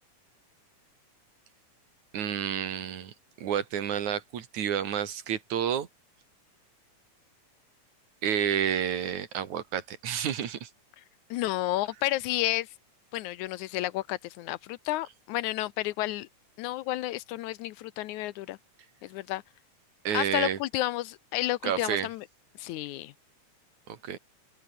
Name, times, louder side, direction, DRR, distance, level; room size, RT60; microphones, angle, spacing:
voice 1, 2.1-5.9 8.2-10.7 20.0-20.6 21.6-22.1 23.9-24.2, right 9 dB, 75° right, 3.4 m, -30 dB
voice 2, 11.3-12.7 13.1-16.3 16.6-18.6 19.0-19.4 20.1-22.3 22.6-23.1, left 16 dB, 90° left, 2.2 m, -31 dB
open air
omnidirectional pair, 3.4 m